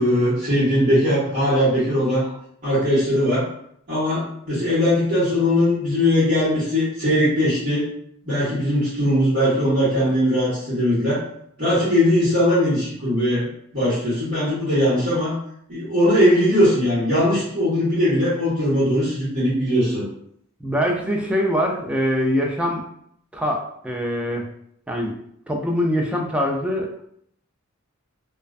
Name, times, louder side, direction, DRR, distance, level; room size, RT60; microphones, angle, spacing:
voice 1, 0.0-2.3 2.6-3.5 3.9-7.8 8.3-11.2 11.6-13.5 13.7-15.3 15.7-20.0, equal, 45° right, -14 dB, 1.2 m, -20 dB
voice 2, 20.6-22.8 23.3-24.5 24.9-25.2 25.5-27.0, equal, 5° right, 0 dB, 0.3 m, -23 dB
2.4 x 2.2 x 2.3 m, 0.69 s
head